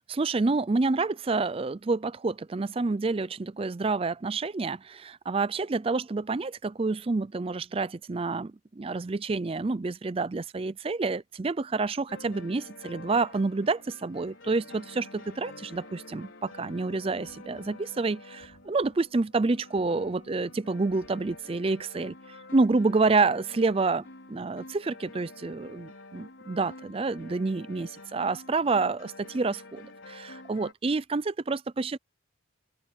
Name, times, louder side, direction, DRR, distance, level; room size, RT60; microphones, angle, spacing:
voice 1, 0.1-22.1 22.5-32.0, right 3 dB, 30° right, 0.4 m, -28 dB
sound 1, 12.1-30.7, left 2 dB, 80° left, 5.3 m, -48 dB
Knock, 17.2-18.0 18.4-19.2 19.7-20.4 20.9-21.6, equal, 85° right, 7.0 m, -63 dB
open air
head